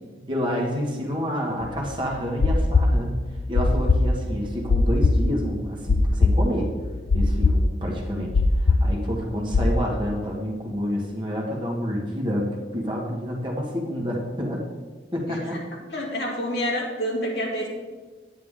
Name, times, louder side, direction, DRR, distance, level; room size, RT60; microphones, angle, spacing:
voice 1, 0.2-3.2 3.5-6.7 7.1-12.5 12.7-14.6 15.1-15.6, equal, 25° right, -2 dB, 1.8 m, -28 dB
sound 1, 1.6-9.7, left 3 dB, 90° left, 0.6 m, -20 dB
voice 2, 15.3-15.6 15.9-17.7, equal, 60° left, -3 dB, 2.7 m, -28 dB
9.6 x 9.4 x 3.7 m, 1.4 s
head